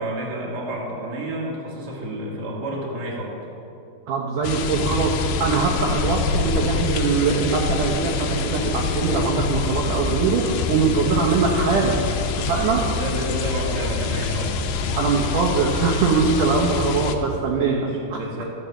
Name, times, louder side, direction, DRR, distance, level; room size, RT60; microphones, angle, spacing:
voice 1, 0.0-3.3 13.0-14.5 17.5-18.4, right 1 dB, 30° right, -4 dB, 2.2 m, -30 dB
voice 2, 4.1-12.0 12.4-12.9 15.0-18.2, right 5 dB, 70° right, -2 dB, 2.1 m, -22 dB
sound 1, 4.4-17.2, left 4 dB, 85° left, 2.9 m, -25 dB
14.0 x 7.1 x 7.6 m, 2.7 s
omnidirectional pair, 4.8 m